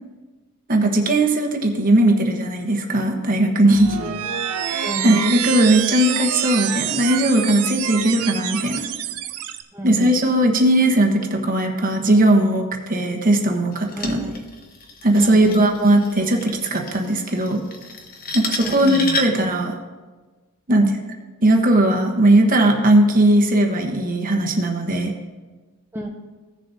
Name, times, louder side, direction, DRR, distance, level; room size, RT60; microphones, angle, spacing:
voice 1, 0.7-4.0 4.7-8.8 9.8-14.2 15.0-17.6 18.3-19.7 20.7-20.9 21.4-25.1, right 1 dB, 40° right, 2 dB, 1.2 m, -18 dB
sound 1, 3.7-9.6, right 10 dB, 80° right, 0.6 m, -27 dB
voice 2, 4.0-5.2 7.9-8.1 9.7-10.2 14.0-14.3 15.2-15.7 18.6-19.2 20.7-20.9 25.9-26.1, right 1 dB, 10° right, -1 dB, 0.6 m, -31 dB
sound 2, 13.7-19.5, left 3 dB, 40° left, 1.0 m, -32 dB
16.0 x 6.9 x 2.7 m, 1.3 s
head